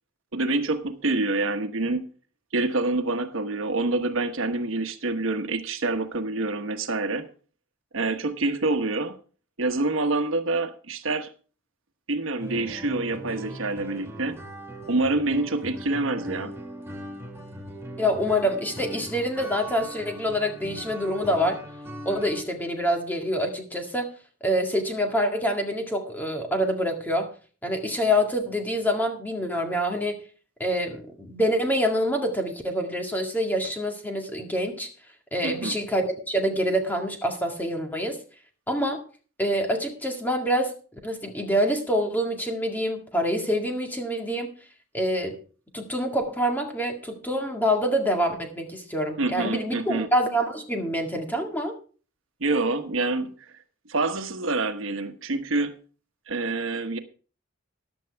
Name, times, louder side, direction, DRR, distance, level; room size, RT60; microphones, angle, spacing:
voice 1, 0.3-2.1 2.5-7.3 7.9-9.2 9.6-11.3 12.1-14.4 14.9-16.5 35.4-35.7 49.2-50.1 52.4-53.3 53.9-55.7 56.3-57.0, right 2 dB, 80° right, 7 dB, 1.2 m, -26 dB
sound 1, 12.4-22.4, right 1 dB, 10° right, 1.6 m, -40 dB
voice 2, 18.0-21.6 22.1-24.1 24.4-27.3 27.6-30.3 30.6-34.9 35.3-38.2 38.7-39.0 39.4-40.7 41.0-44.5 44.9-45.4 45.7-51.8, equal, 10° left, 3 dB, 1.9 m, -26 dB
14.5 x 11.0 x 3.4 m, 0.38 s
head